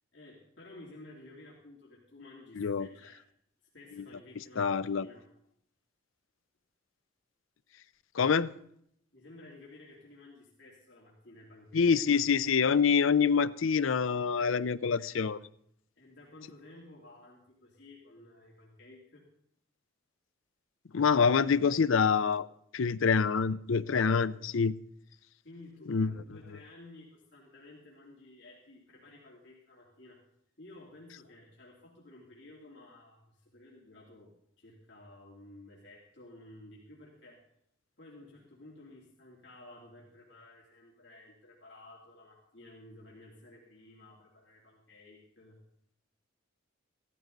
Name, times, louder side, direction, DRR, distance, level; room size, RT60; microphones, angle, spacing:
voice 1, 0.1-3.2 3.7-5.3 9.1-11.9 14.4-14.6 16.0-19.3 25.4-30.2 30.6-34.3 34.6-37.4 38.0-45.6, left 2 dB, 60° left, -4 dB, 3.1 m, -53 dB
voice 2, 2.6-2.9 4.6-5.1 8.1-8.5 11.7-15.4 20.9-22.5 22.7-24.7 25.9-26.1, left 6 dB, 80° left, 16 dB, 0.5 m, -26 dB
15.5 x 14.0 x 4.0 m, 0.71 s
head